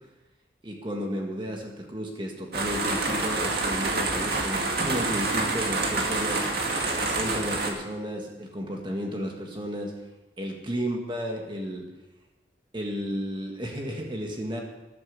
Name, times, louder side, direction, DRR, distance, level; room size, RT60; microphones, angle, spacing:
voice 1, 0.6-6.5 6.8-10.0 10.4-11.9 12.7-14.6, equal, 25° right, 1 dB, 1.8 m, -33 dB
sound 1, 2.5-7.7, right 3 dB, 60° right, 2.1 m, -27 dB
14.0 x 11.5 x 5.4 m, 1.0 s
head